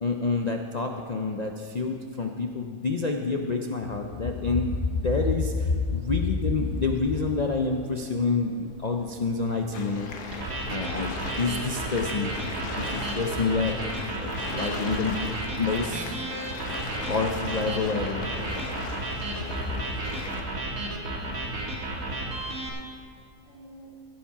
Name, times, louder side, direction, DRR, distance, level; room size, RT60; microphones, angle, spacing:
voice 1, 0.0-10.1 10.7-12.3 12.7-13.8 14.2-15.1 15.6-16.2 17.1-18.2, left 4 dB, 60° left, 2 dB, 0.4 m, -27 dB
sound 1, 3.8-19.1, right 1 dB, 90° right, 2.9 m, -51 dB
sound 2, 9.7-20.4, left 3 dB, 90° left, 1.8 m, -38 dB
sound 3, 10.3-22.7, right 2 dB, 60° right, 2.0 m, -33 dB
voice 2, 21.1-22.6 23.4-24.0, equal, 40° right, -8 dB, 3.3 m, -49 dB
15.5 x 7.4 x 5.8 m, 2.3 s
omnidirectional pair, 1.7 m